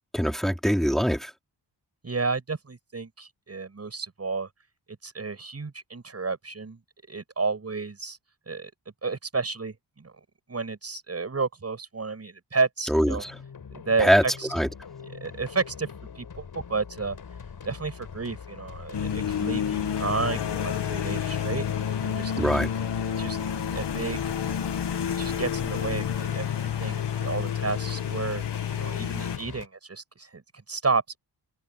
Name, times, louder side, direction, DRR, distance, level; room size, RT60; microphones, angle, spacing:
voice 1, 0.1-1.3 12.9-13.2 14.0-14.2 14.5-14.7 22.4-22.7, equal, ahead, 3.7 m, -22 dB
voice 2, 2.0-4.5 4.9-6.8 7.1-8.2 8.5-8.7 9.0-10.1 10.5-13.2 13.7-14.5 15.0-17.4 17.6-21.6 22.0-22.3 23.2-23.4 23.7-24.2 25.2-31.2, right 4 dB, 35° right, 8.0 m, -31 dB
sound 1, 13.2-29.7, left 6 dB, 60° left, 4.8 m, -42 dB
sound 2, 18.9-29.4, left 8 dB, 75° left, 2.2 m, -29 dB
wide cardioid pair, 120°, 42 cm